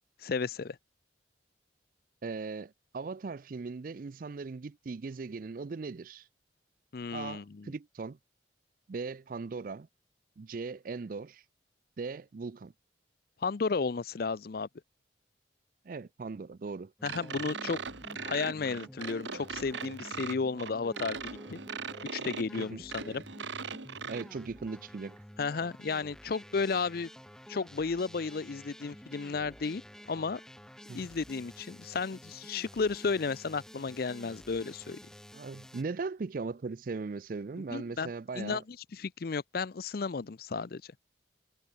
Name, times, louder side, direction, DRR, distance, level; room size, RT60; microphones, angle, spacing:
voice 1, 0.2-0.8 6.9-7.7 13.4-14.7 17.0-21.2 21.5-21.6 22.1-23.2 25.4-27.1 27.5-29.8 30.1-30.4 30.9-35.0 37.7-40.8, left 4 dB, 50° left, 0.5 m, -33 dB
voice 2, 2.2-6.3 7.1-8.2 8.9-9.9 10.4-11.4 12.0-12.7 15.9-16.9 22.6-22.8 24.1-25.2 30.9-31.1 35.3-38.6, right 4 dB, 45° right, 0.4 m, -39 dB
sound 1, 17.0-35.8, equal, 5° left, 0.9 m, -51 dB
sound 2, 17.0-24.2, right 5 dB, 75° right, 1.6 m, -40 dB
head